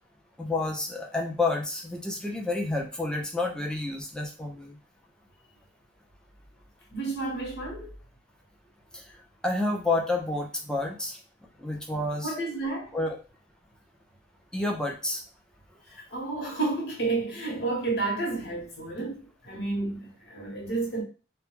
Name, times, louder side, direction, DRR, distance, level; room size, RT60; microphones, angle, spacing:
voice 1, 0.4-4.8 8.9-9.1 9.4-11.2 11.6-12.3 12.9-13.2 14.5-15.2, left 2 dB, 5° left, 0.4 m, -29 dB
voice 2, 6.9-7.9 12.2-12.9 15.9-21.0, right 3 dB, 70° left, 0.9 m, -31 dB
2.1 x 2.1 x 3.0 m
head